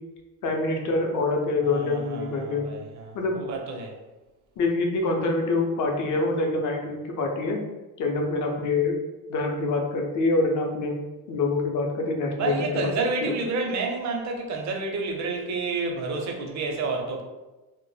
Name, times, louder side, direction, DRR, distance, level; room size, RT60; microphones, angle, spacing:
voice 1, 0.4-2.6 3.1-3.4 4.6-7.6 8.0-8.9 9.3-10.9 11.3-12.9 13.2-13.3, left 3 dB, 60° left, 2 dB, 0.6 m, -25 dB
voice 2, 1.6-3.9 12.4-17.2, right 3 dB, 50° right, 2 dB, 0.6 m, -29 dB
2.1 x 2.1 x 3.1 m, 1.1 s
cardioid pair, 110°, 35 cm